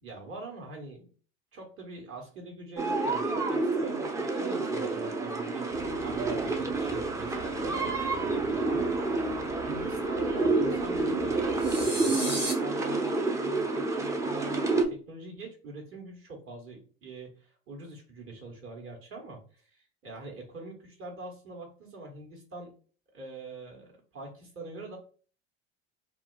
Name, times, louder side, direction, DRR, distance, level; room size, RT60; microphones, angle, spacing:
voice 1, 0.0-1.1 1.5-9.3 9.6-22.7 23.1-25.0, right 2 dB, 45° right, 1 dB, 1.1 m, -44 dB
sound 1, 2.8-14.9, right 3 dB, 10° right, 0.3 m, -29 dB
sound 2, 5.7-11.9, right 3 dB, 60° right, 0.7 m, -48 dB
sound 3, 11.6-12.5, right 1 dB, 85° right, 1.3 m, -33 dB
2.3 x 2.2 x 2.3 m, 0.39 s
hypercardioid pair, 70°, 32 cm